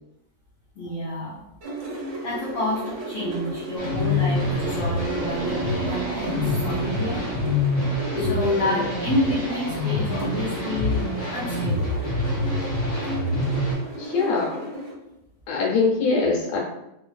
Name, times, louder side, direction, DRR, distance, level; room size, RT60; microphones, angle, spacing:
voice 1, 0.8-1.4 1.9-7.2 8.2-12.2 14.0-14.2, left 1 dB, 65° left, -8 dB, 1.6 m, -30 dB
sound 1, 1.6-14.9, right 1 dB, 55° right, 1.2 m, -34 dB
sound 2, 3.8-13.7, left 2 dB, 35° left, 1.5 m, -26 dB
sound 3, 4.0-8.7, right 5 dB, 80° right, 1.5 m, -36 dB
voice 2, 8.1-8.8 14.0-14.6 15.5-16.6, left 4 dB, 80° left, -2 dB, 2.4 m, -23 dB
5.1 x 2.4 x 2.4 m, 0.85 s
omnidirectional pair, 3.5 m